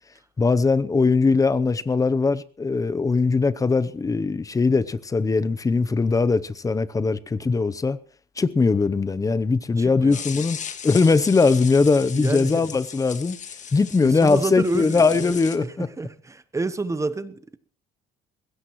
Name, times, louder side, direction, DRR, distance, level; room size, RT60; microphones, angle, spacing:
voice 1, 0.4-8.0 8.4-10.6 10.8-13.4 13.7-15.9, left 4 dB, 20° left, 0.7 m, -20 dB
voice 2, 9.8-10.2 12.1-12.7 14.0-17.6, right 3 dB, 15° right, 0.9 m, -30 dB
sound 1, 10.1-15.6, left 8 dB, 45° left, 1.6 m, -37 dB
20.5 x 16.5 x 3.1 m
cardioid pair, 110°, 17 cm